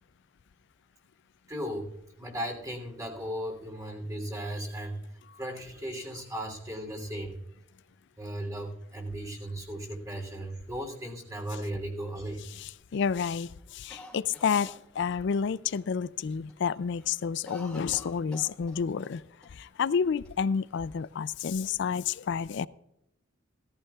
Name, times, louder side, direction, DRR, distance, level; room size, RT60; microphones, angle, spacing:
voice 1, 1.5-1.9 2.2-5.0 5.4-7.4 8.2-12.4, right 1 dB, 15° right, 3.1 m, -36 dB
voice 2, 12.5-19.2 19.5-22.7, left 6 dB, 60° left, 0.4 m, -30 dB
Cough, 13.9-15.4 15.8-15.9 16.2-16.6 16.9-19.1 19.4-19.5 20.2-21.0, left 2 dB, 5° left, 2.4 m, -48 dB
17.0 x 14.5 x 2.4 m
head